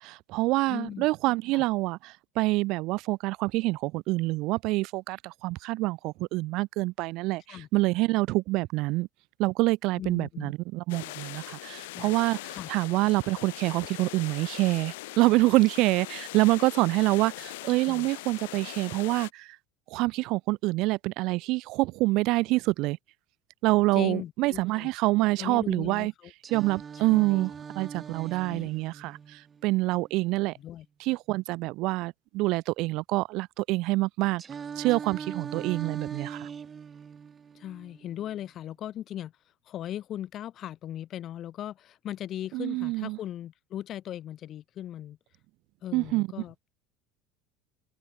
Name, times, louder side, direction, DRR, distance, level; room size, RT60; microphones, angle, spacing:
voice 1, 0.0-9.1 9.4-19.6 19.9-23.0 23.6-26.1 26.5-30.5 31.0-34.4 34.7-36.5 42.5-43.2 45.9-46.3, right 21 dB, 60° right, 1.4 m, -26 dB
voice 2, 0.7-1.1 1.5-1.6 7.5-7.7 10.0-10.5 11.8-12.1 12.5-12.7 17.9-18.1 23.9-24.9 25.4-26.3 27.1-27.5 28.4-28.7 30.6-30.8 37.5-39.3 39.7-45.2 45.8-46.7, left 11 dB, 50° left, 5.1 m, -38 dB
sound 1, 10.9-19.3, left 20 dB, 80° left, 1.8 m, -41 dB
Singing, 26.4-30.4 34.4-38.4, right 6 dB, 30° right, 3.2 m, -41 dB
hypercardioid pair, 85°, 0 cm